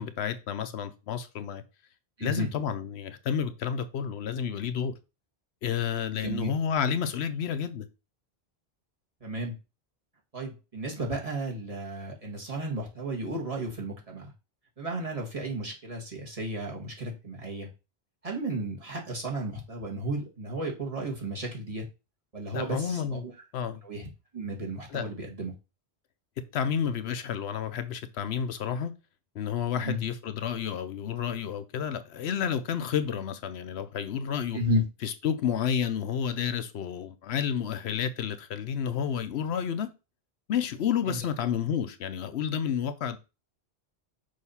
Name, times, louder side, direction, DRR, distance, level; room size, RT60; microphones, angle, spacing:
voice 1, 0.0-1.6 2.2-4.9 5.6-7.9 22.5-23.3 23.5-23.8 24.9-25.0 26.5-28.9 29.3-34.6 35.0-39.9 40.5-43.2, left 8 dB, 80° left, 0.9 m, -30 dB
voice 2, 2.2-2.5 6.1-6.5 9.2-9.5 10.3-14.3 14.8-17.7 18.2-21.9 22.3-23.3 23.8-25.5 29.7-30.0 34.5-34.8 41.0-41.2, right 1 dB, 35° right, 1.6 m, -33 dB
6.4 x 2.7 x 5.5 m
omnidirectional pair, 1.1 m